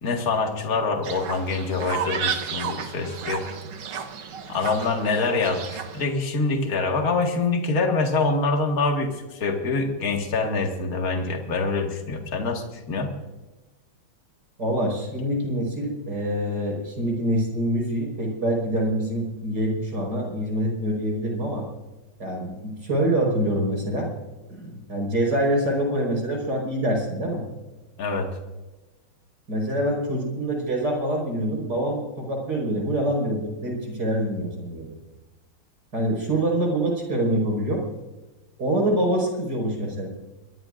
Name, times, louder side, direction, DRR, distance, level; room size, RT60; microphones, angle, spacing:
voice 1, 0.0-3.5 4.5-13.1 28.0-28.3, left 3 dB, 45° left, 2 dB, 2.2 m, -25 dB
Fowl, 1.0-6.0, right 7 dB, 85° right, 2.2 m, -32 dB
voice 2, 14.6-21.6 22.2-24.1 24.5-27.4 29.5-34.9 35.9-37.9 38.6-40.1, right 1 dB, 50° right, 0 dB, 5.7 m, -25 dB
24.0 x 21.0 x 2.6 m, 1.1 s
omnidirectional pair, 2.3 m